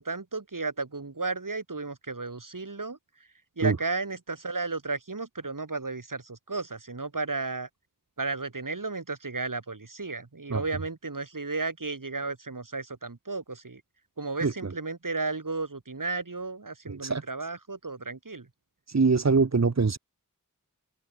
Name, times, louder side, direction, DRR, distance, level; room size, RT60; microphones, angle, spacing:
voice 1, 0.0-3.0 3.6-7.7 8.2-13.8 14.2-18.5, right 3 dB, 65° right, 2.2 m, -33 dB
voice 2, 16.9-17.2 18.9-20.0, right 4 dB, 50° right, 0.9 m, -24 dB
wide cardioid pair, 45°, 34 cm